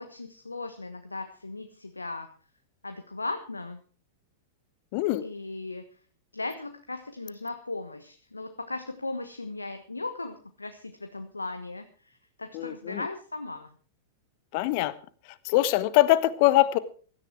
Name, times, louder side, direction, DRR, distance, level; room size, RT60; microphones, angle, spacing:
voice 1, 0.0-2.3 2.8-3.8 5.2-5.9 6.3-13.7, left 2 dB, 80° left, 8 dB, 1.2 m, -37 dB
voice 2, 4.9-5.2 12.5-13.1 14.5-14.9 15.4-16.8, left 16 dB, 45° left, 17 dB, 1.1 m, -23 dB
16.5 x 13.0 x 4.7 m, 0.41 s
figure-of-eight pair, 95°, 0 cm